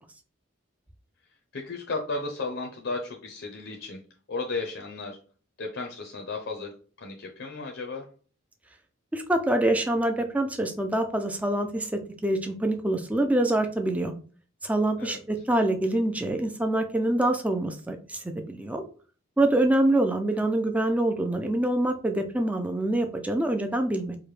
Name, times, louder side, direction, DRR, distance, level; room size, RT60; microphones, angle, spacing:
voice 1, 1.5-4.0 4.3-5.2 5.6-6.7 7.0-8.1 15.0-15.2, left 3 dB, 60° left, 1 dB, 0.6 m, -34 dB
voice 2, 9.1-14.1 14.6-18.8 19.4-24.2, right 1 dB, 5° right, 5 dB, 0.3 m, -25 dB
4.8 x 2.1 x 3.1 m, 0.40 s
head